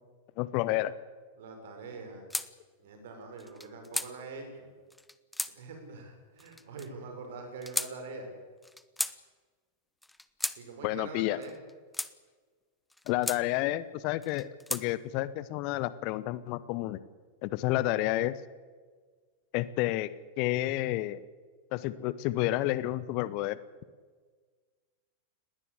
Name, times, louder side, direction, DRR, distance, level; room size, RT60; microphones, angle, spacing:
voice 1, 0.4-0.9 10.8-11.4 13.1-17.0 17.4-18.4 19.5-20.1 20.4-21.2 21.7-23.6, left 16 dB, 45° left, 17 dB, 0.9 m, -30 dB
voice 2, 1.4-2.3 2.8-4.7 5.6-8.3 10.6-11.5, right 3 dB, 55° right, 4 dB, 6.4 m, -44 dB
sound 1, 2.3-2.5 3.4-4.1 4.9-5.5 6.4-6.9 7.6-7.9 8.6-9.2 10.0-10.6 11.4-12.1 12.9-13.4 14.2-14.8, left 1 dB, 5° left, 0.9 m, -35 dB
20.0 x 18.0 x 8.3 m, 1.5 s
figure-of-eight pair, 90°, 0 cm